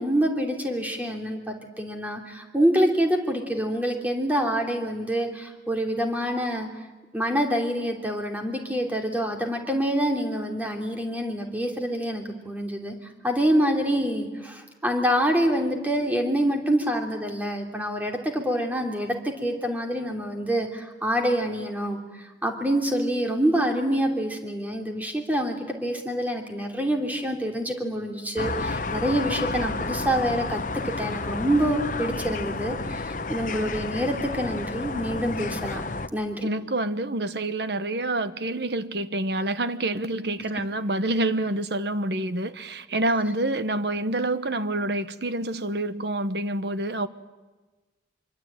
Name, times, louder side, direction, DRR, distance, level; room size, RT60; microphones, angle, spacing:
voice 1, 0.0-6.7 7.1-13.0 13.2-35.8 36.1-36.5, equal, 10° right, 2 dB, 3.1 m, -26 dB
sound 1, 28.4-36.1, left 3 dB, 45° left, 0.9 m, -31 dB
voice 2, 36.4-47.1, right 2 dB, 65° right, 12 dB, 1.2 m, -27 dB
25.5 x 24.5 x 9.0 m, 1.2 s
head